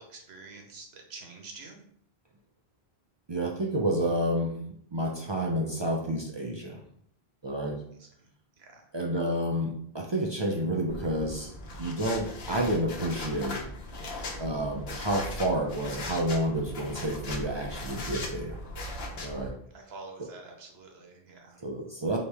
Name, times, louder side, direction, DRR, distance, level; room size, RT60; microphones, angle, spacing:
voice 1, 0.0-1.8 8.0-8.3 8.6-8.9 19.7-21.6, right 3 dB, 75° right, 2 dB, 1.1 m, -47 dB
voice 2, 3.3-4.5 4.9-6.8 7.4-7.8 8.9-11.5 11.8-13.6 14.4-18.6 19.2-19.5 21.6-22.2, right 1 dB, 40° right, 0 dB, 0.4 m, -29 dB
sound 1, 10.9-19.5, left 1 dB, 70° left, 1.0 m, -39 dB
4.5 x 2.9 x 3.4 m, 0.67 s
omnidirectional pair, 1.1 m